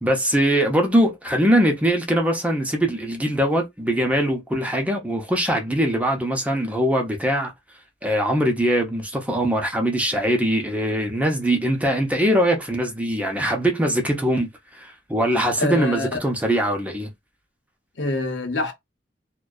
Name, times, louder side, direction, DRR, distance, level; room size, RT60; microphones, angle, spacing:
voice 1, 0.0-7.5 8.0-17.1, equal, 10° right, 0.6 m, -22 dB
voice 2, 15.6-16.2 18.0-18.7, left 2 dB, 85° left, 0.8 m, -25 dB
2.6 x 2.2 x 2.3 m
head